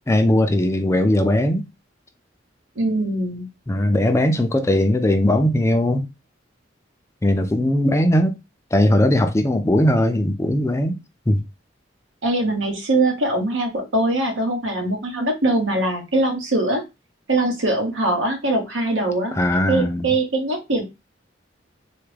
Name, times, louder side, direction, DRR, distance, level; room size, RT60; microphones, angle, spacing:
voice 1, 0.1-1.7 3.7-6.1 7.2-8.3 8.7-11.0 11.3-11.4 19.3-20.1, left 1 dB, 15° left, 0.4 m, -19 dB
voice 2, 2.8-3.5 12.2-16.8 17.3-19.3 19.7-20.8, right 2 dB, 85° right, 1.1 m, -22 dB
3.3 x 2.1 x 3.2 m
head